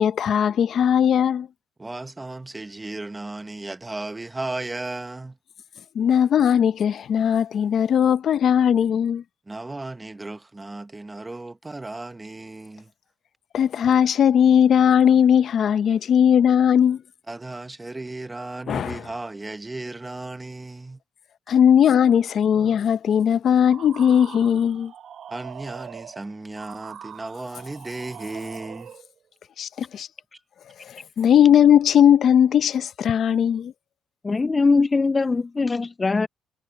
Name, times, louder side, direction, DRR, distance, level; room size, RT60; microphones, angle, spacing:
voice 1, 0.0-1.5 5.9-9.2 13.5-17.0 18.7-19.0 21.5-24.9 29.6-30.1 30.8-33.7, left 9 dB, 60° left, 0.9 m, -18 dB
voice 2, 1.8-5.4 9.5-12.9 17.3-21.0 21.5-21.6 25.3-28.9, right 2 dB, 15° right, 1.2 m, -35 dB
sound 1, 23.7-29.1, right 8 dB, 65° right, 2.9 m, -42 dB
voice 3, 34.2-36.3, left 4 dB, 25° left, 0.5 m, -21 dB
cardioid pair, 90°, 0 cm